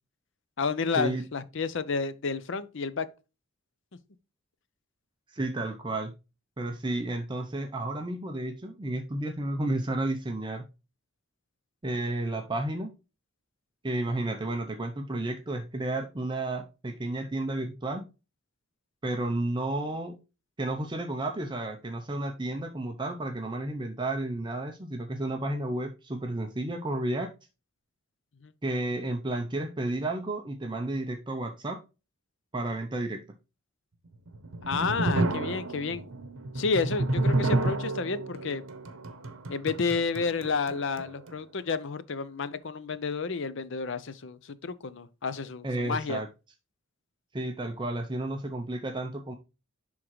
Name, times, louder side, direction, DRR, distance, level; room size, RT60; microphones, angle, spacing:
voice 1, 0.6-3.1 28.4-28.5 34.7-36.0 36.5-38.6 39.5-46.2, left 4 dB, 60° left, 0.6 m, -31 dB
voice 2, 5.3-6.1 6.6-10.6 11.8-12.9 13.8-18.1 19.0-20.2 20.6-27.3 28.6-31.8 32.5-33.2 45.6-46.3 47.3-49.3, right 2 dB, 20° right, 0.6 m, -32 dB
sound 1, 34.1-41.4, right 2 dB, 75° right, 0.9 m, -30 dB
11.0 x 3.7 x 3.1 m
head